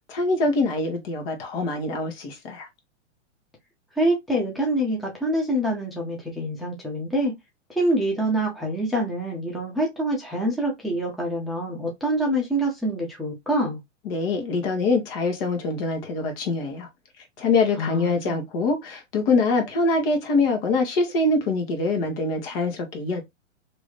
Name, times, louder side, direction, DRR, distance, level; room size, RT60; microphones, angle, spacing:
voice 1, 0.1-2.7 14.0-16.9 17.4-23.2, left 3 dB, 50° left, 1.4 m, -24 dB
voice 2, 4.0-7.3 7.7-13.8 17.8-18.4, right 1 dB, ahead, 0.8 m, -25 dB
3.0 x 2.7 x 3.2 m
hypercardioid pair, 125°, 37 cm